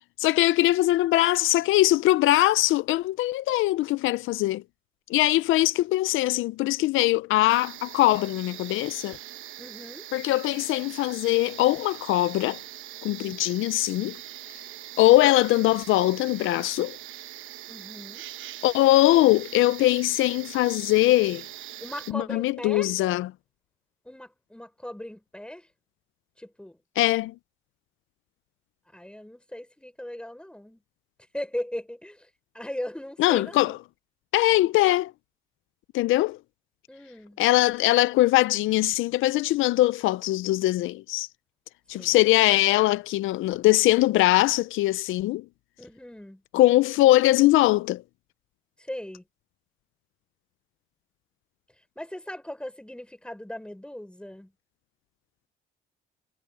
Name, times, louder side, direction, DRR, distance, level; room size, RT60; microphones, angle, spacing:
voice 1, 0.2-4.6 5.1-9.2 10.1-12.6 13.0-14.2 15.0-17.0 18.6-21.4 22.1-23.3 27.0-27.3 33.2-33.8 34.3-35.1 35.9-36.4 37.4-41.3 41.9-45.4 46.5-48.0, left 16 dB, 85° left, 0.5 m, -21 dB
sound 1, 7.5-22.1, right 13 dB, 85° right, 1.0 m, -42 dB
voice 2, 9.6-10.1 13.2-13.8 17.7-18.2 21.8-22.9 24.0-25.7 26.4-26.8 28.9-30.8 31.3-32.3 32.5-33.8 36.9-37.4 41.9-42.2 45.8-46.4 48.8-49.3 52.0-54.5, left 1 dB, 5° left, 5.9 m, -38 dB
cardioid pair, 90°, 20 cm